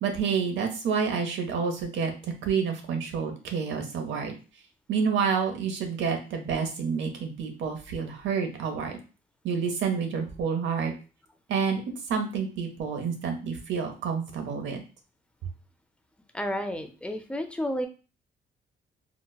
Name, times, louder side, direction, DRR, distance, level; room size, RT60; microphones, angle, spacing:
voice 1, 0.0-4.3 4.9-9.0 9.4-10.9 11.5-11.8 12.1-14.8, right 6 dB, 70° right, 4 dB, 0.8 m, -29 dB
voice 2, 16.3-17.9, equal, 5° left, 6 dB, 0.5 m, -31 dB
4.0 x 2.1 x 2.2 m, 0.34 s
cardioid pair, 90°, 20 cm